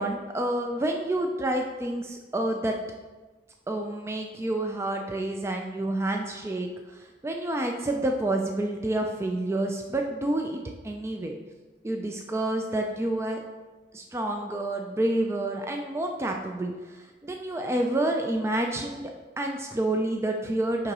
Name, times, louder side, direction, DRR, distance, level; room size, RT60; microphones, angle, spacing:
voice 1, 0.0-2.8 3.7-11.3 11.8-13.4 13.9-19.1 19.4-20.9, right 1 dB, 15° right, 2 dB, 0.3 m, -29 dB
9.8 x 3.8 x 3.0 m, 1.3 s
head